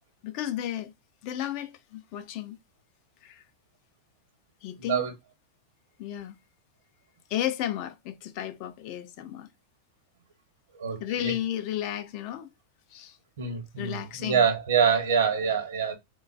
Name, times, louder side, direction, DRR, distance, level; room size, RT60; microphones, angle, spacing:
voice 1, 0.2-0.9 1.2-2.6 3.2-3.4 4.6-5.1 6.0-6.4 7.3-9.5 11.0-12.5 12.9-13.2 13.8-14.5, left 11 dB, 45° left, 0.4 m, -33 dB
voice 2, 4.8-5.1 10.7-11.3 13.4-16.0, right 7 dB, 60° right, 1.0 m, -25 dB
3.7 x 2.2 x 2.4 m
figure-of-eight pair, 90°, 0 cm